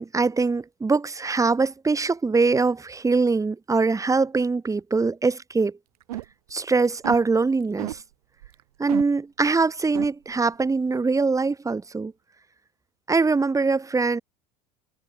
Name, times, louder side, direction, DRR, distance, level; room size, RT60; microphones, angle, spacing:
voice 1, 0.0-5.8 6.5-8.0 8.8-12.1 13.1-14.2, right 4 dB, 15° right, 3.6 m, -23 dB
sound 1, 6.0-6.5 6.8-7.2 7.8-8.0 8.4-8.6 8.9-9.1 9.6-9.7 10.0-10.1, right 15 dB, 75° right, 2.7 m, -32 dB
hypercardioid pair, 80°, 19 cm